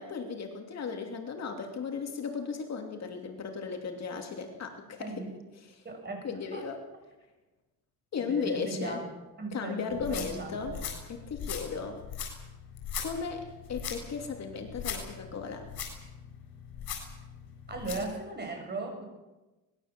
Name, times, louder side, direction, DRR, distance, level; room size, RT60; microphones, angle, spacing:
voice 1, 0.0-5.2 5.7-5.8 6.2-6.8 8.1-9.0 9.5-10.8 11.1-12.0 13.0-15.7, left 5 dB, 45° left, 3 dB, 2.9 m, -36 dB
voice 2, 5.0-5.3 5.8-6.6 8.2-9.1 9.4-10.8 17.7-19.0, right 3 dB, 25° right, 3 dB, 7.2 m, -38 dB
sound 1, 9.9-18.1, left 6 dB, 80° left, 7.9 m, -40 dB
24.5 x 20.0 x 7.5 m, 1.1 s
cardioid pair, 160°, 37 cm